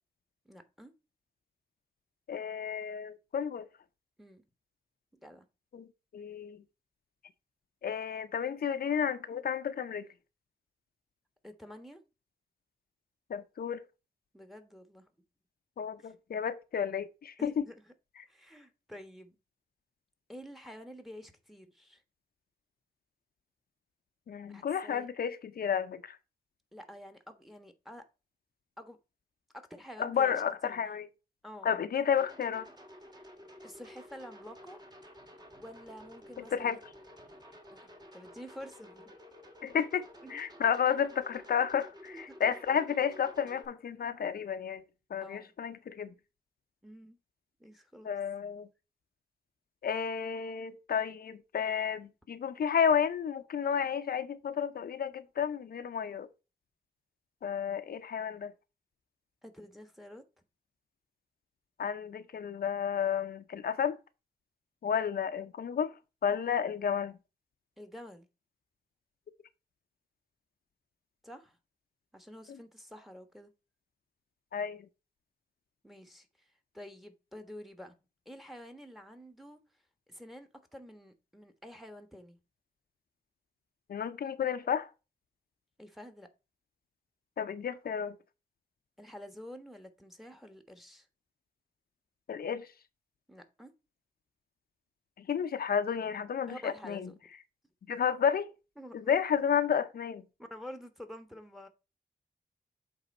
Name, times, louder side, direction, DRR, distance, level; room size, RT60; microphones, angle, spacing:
voice 1, 0.4-0.9 4.2-4.4 5.2-5.5 11.4-12.0 14.3-15.1 16.0-16.1 17.4-17.9 18.3-19.4 20.3-22.0 24.5-25.1 26.7-28.0 28.8-29.0 29.5-30.8 31.4-31.7 33.6-34.8 35.6-36.8 37.7-39.1 40.2-40.4 42.1-42.3 45.2-45.5 46.8-47.2 47.6-48.1 59.4-60.2 67.8-68.3 71.2-71.6 72.1-73.5 75.8-76.5 76.7-77.9 78.2-79.6 80.1-82.4 85.8-86.3 89.0-91.1 93.3-93.7 96.5-97.2 98.8-99.1 100.4-101.7, equal, ahead, 1.2 m, -49 dB
voice 2, 2.3-3.7 5.7-5.9 6.1-6.6 7.8-10.1 13.3-13.8 15.8-17.7 24.3-26.2 30.0-31.1 31.6-32.7 36.4-36.8 39.6-44.8 45.1-46.1 48.0-48.7 49.8-56.3 57.4-58.5 61.8-64.0 64.8-65.9 66.2-67.1 72.5-72.6 74.5-74.9 83.9-84.9 87.4-88.2 92.3-92.7 95.2-97.1 97.9-98.5 98.9-100.2, left 7 dB, 80° left, 0.6 m, -31 dB
sound 1, 32.2-43.7, equal, 25° right, 1.6 m, -52 dB
8.0 x 3.4 x 5.2 m
wide cardioid pair, 85°, 16 cm